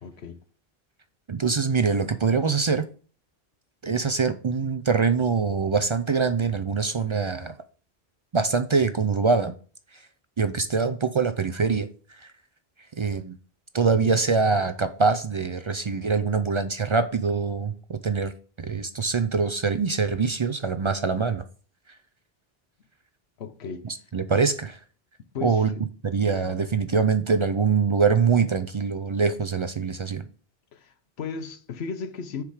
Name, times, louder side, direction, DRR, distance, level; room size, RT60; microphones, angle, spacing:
voice 1, 0.0-0.4 23.4-23.8 25.3-25.9 30.7-32.4, left 5 dB, 85° left, 1.1 m, -35 dB
voice 2, 1.3-2.9 3.8-7.5 8.3-9.5 10.4-11.9 12.2-12.3 13.0-13.3 13.7-18.3 18.6-21.4 23.8-24.8 25.4-25.7 26.0-30.3, right 5 dB, 45° right, 0.4 m, -24 dB
6.7 x 5.0 x 4.8 m
omnidirectional pair, 1.0 m